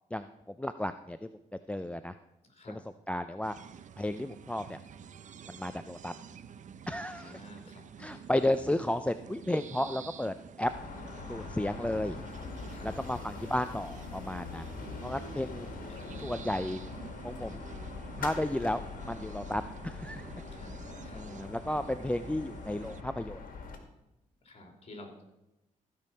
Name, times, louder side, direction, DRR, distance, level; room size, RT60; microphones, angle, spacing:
voice 1, 0.1-1.3 1.7-2.1 2.7-2.8 3.1-3.6 4.0-4.8 5.5-6.1 6.9-7.4 8.0-10.7 11.2-12.2 12.8-14.7 15.0-15.7 16.2-16.8 17.2-17.6 18.2-20.2 21.1-23.4, left 1 dB, 10° left, 11 dB, 0.5 m, -33 dB
voice 2, 2.5-2.8 6.9-8.2 12.6-12.9 15.3-16.1 20.6-21.2 24.4-25.2, left 1 dB, 45° left, 3 dB, 3.3 m, -52 dB
sound 1, 3.4-23.0, right 7 dB, 60° right, 0.6 m, -49 dB
sound 2, 10.6-23.8, left 4 dB, 75° left, 1.9 m, -43 dB
15.5 x 5.3 x 5.7 m, 0.92 s
cardioid pair, 70°, 14 cm